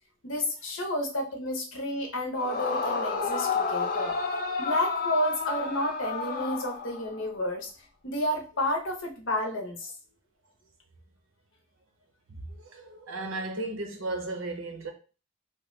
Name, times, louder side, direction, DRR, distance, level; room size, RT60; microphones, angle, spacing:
voice 1, 0.2-4.2 4.6-7.7 8.0-9.9, left 1 dB, 70° left, 0.9 m, -31 dB
Yell / Screaming, 2.3-7.3, left 5 dB, 45° left, 0.5 m, -30 dB
voice 2, 12.3-14.9, right 2 dB, 90° right, 0.7 m, -35 dB
3.2 x 2.3 x 3.1 m
head